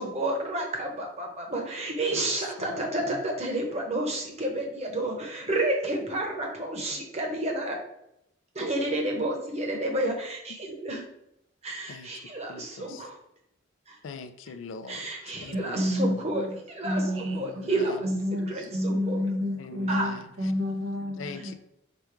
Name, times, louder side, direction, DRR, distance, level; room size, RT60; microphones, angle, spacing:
voice 1, 0.0-7.8 8.5-11.0 11.6-13.2 13.9-14.0 14.9-18.1 18.5-19.2 19.9-20.1 21.3-21.4, right 1 dB, 30° right, 0.9 m, -30 dB
voice 2, 2.6-3.2 11.9-12.1 12.5-13.0 14.0-15.1 15.4-16.3 17.4-18.0 19.6-20.3 21.2-21.5, left 4 dB, 75° left, 0.4 m, -42 dB
voice 3, 15.5-16.6 16.8-17.7 18.0-21.5, left 1 dB, 85° right, 0.7 m, -29 dB
5.0 x 2.3 x 4.4 m
head